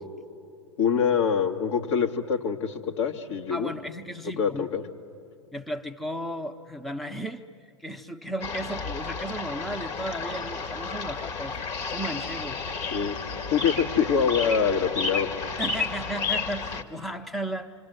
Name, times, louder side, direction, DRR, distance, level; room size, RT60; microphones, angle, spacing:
voice 1, 0.8-3.7 4.4-4.8 12.9-13.1 13.5-15.3, left 7 dB, 65° left, 3 dB, 2.3 m, -25 dB
voice 2, 3.5-4.7 5.5-7.4 7.8-11.6 11.9-12.6 15.6-17.7, right 1 dB, ahead, 7 dB, 0.8 m, -35 dB
sound 1, 8.4-16.8, left 4 dB, 40° left, 1.9 m, -32 dB
27.0 x 26.5 x 8.0 m, 2.7 s
hypercardioid pair, 100°, 16 cm